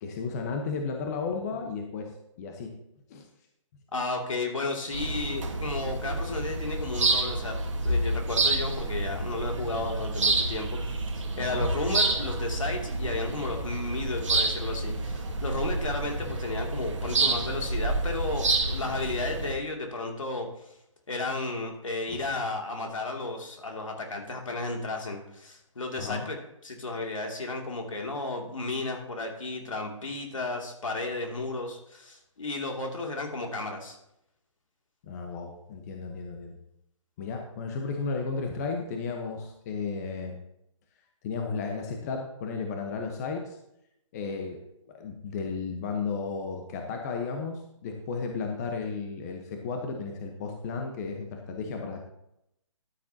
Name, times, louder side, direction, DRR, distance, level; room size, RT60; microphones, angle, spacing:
voice 1, 0.0-2.7 3.1-3.2 11.4-11.7 26.0-26.3 35.0-36.6 37.2-40.4 41.2-43.6 44.1-44.6 44.9-52.0, left 4 dB, 30° left, 3 dB, 1.2 m, -34 dB
voice 2, 3.9-7.6 7.8-20.5 21.1-26.4 26.6-34.0, left 2 dB, 70° left, 1 dB, 2.8 m, -33 dB
sound 1, 4.9-19.5, right 2 dB, 65° right, 1.9 m, -29 dB
13.0 x 9.8 x 2.9 m, 0.80 s
figure-of-eight pair, 145°, 17 cm